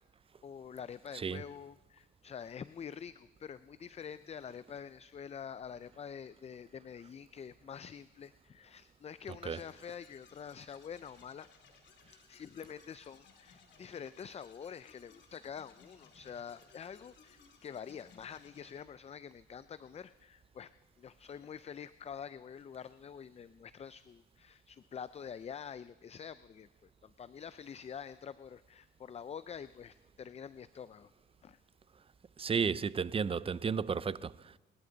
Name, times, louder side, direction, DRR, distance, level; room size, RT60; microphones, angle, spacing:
voice 1, 0.4-11.5 12.3-20.7 21.0-31.1 31.4-31.6, left 7 dB, 30° left, 0.4 m, -47 dB
sound 1, 9.5-18.8, left 6 dB, 65° left, 3.0 m, -62 dB
voice 2, 32.4-34.6, right 6 dB, 30° right, 0.5 m, -33 dB
30.0 x 12.0 x 4.0 m
cardioid pair, 90°, 20 cm